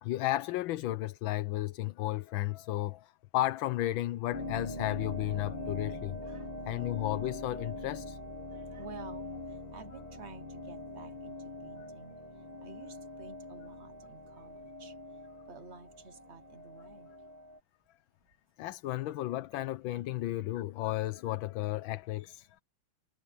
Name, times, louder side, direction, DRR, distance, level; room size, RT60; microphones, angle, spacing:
voice 1, 0.0-6.2 6.7-8.2 18.6-22.6, left 15 dB, 80° left, 1.5 m, -33 dB
sound 1, 4.3-17.6, left 2 dB, 20° left, 1.7 m, -43 dB
voice 2, 8.5-12.2 12.6-14.9 15.5-17.1, right 4 dB, 35° right, 1.4 m, -52 dB
omnidirectional pair, 2.2 m